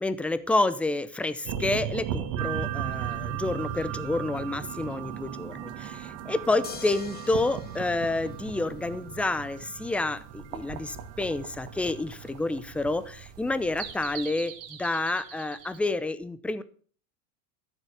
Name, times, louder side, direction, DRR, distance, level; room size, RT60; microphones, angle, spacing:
voice 1, 0.0-1.3 1.6-5.5 6.3-10.2 10.5-10.8 11.2-13.0 13.4-14.5 14.8-16.6, left 2 dB, 5° left, 14 dB, 0.6 m, -28 dB
sound 1, 1.4-15.8, right 8 dB, 55° right, 2.4 m, -38 dB
sound 2, 2.4-14.3, right 18 dB, 35° right, 0.9 m, -42 dB
sound 3, 6.6-9.1 10.8-10.9, left 6 dB, 20° left, 1.6 m, -45 dB
13.5 x 7.3 x 6.8 m, 0.43 s
supercardioid pair, 135°, 44 cm